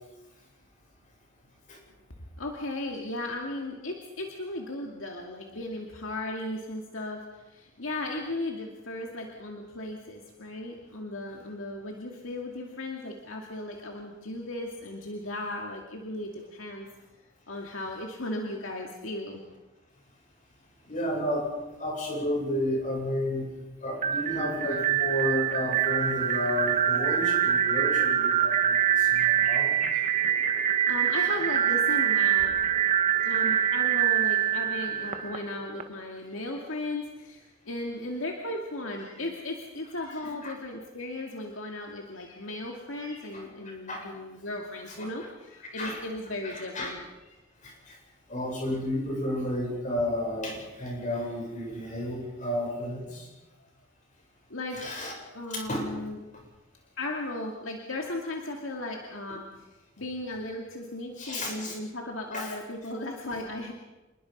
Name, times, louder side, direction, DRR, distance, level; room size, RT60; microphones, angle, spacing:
voice 1, 2.4-16.9 17.5-19.4 29.2-29.4 30.9-32.6 33.2-47.0 54.5-56.3 57.0-59.5 60.0-63.7, left 2 dB, 75° left, 1 dB, 2.5 m, -36 dB
voice 2, 20.8-21.5 21.8-23.4 23.8-29.8 40.2-40.5 43.3-43.4 43.9-44.0 45.7-46.0 46.4-46.9 47.6-48.0 48.3-53.3 54.7-55.1 55.5-55.9 61.2-61.7 62.3-62.5, left 1 dB, 40° left, 0 dB, 7.8 m, -32 dB
sound 1, 24.0-35.8, right 9 dB, 40° right, 1.6 m, -25 dB
27.5 x 21.0 x 5.5 m, 1.1 s
head